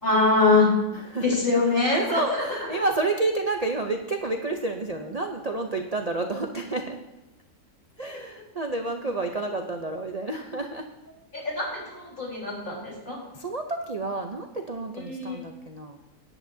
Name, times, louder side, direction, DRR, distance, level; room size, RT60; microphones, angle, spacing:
voice 1, 0.0-0.7 1.2-2.6 11.3-13.2 15.1-15.4, left 3 dB, 30° left, -4 dB, 4.5 m, -23 dB
voice 2, 0.9-1.3 1.9-7.0 8.0-10.9 13.3-16.0, right 3 dB, 70° right, 3 dB, 0.3 m, -30 dB
18.0 x 10.0 x 2.7 m, 0.93 s
omnidirectional pair, 1.8 m